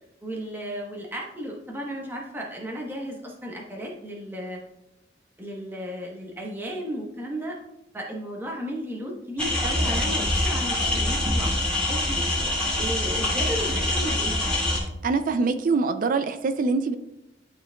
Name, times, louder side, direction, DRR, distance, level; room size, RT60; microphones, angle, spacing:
voice 1, 0.2-4.6 5.4-7.6 7.9-12.2 12.8-14.4, equal, 10° right, -1 dB, 1.0 m, -34 dB
sound 1, 9.4-14.8, left 1 dB, 5° left, 2.0 m, -25 dB
voice 2, 15.0-17.0, right 4 dB, 50° right, 10 dB, 0.4 m, -24 dB
11.5 x 4.6 x 2.3 m, 0.92 s
head